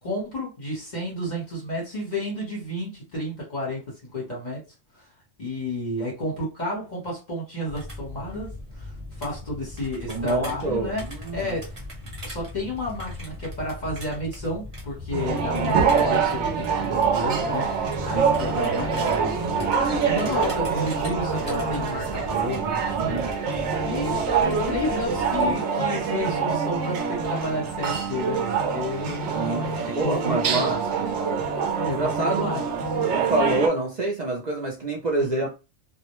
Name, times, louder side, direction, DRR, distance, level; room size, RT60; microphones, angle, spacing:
voice 1, 0.0-4.6 5.0-5.1 5.4-11.1 11.3-11.8 12.2-23.5 23.8-30.9 31.7-32.7 35.2-35.3, left 1 dB, 40° left, 1.0 m, -31 dB
sound 1, 7.7-25.6, left 2 dB, 25° right, 1.0 m, -39 dB
voice 2, 10.1-11.5 18.1-18.3 22.9-23.3 29.3-29.7 29.9-31.1 31.9-32.5 33.1-35.5, right 2 dB, 50° right, 0.5 m, -27 dB
sound 2, 15.1-33.7, right 5 dB, 70° right, 0.9 m, -25 dB
2.3 x 2.1 x 2.9 m
omnidirectional pair, 1.3 m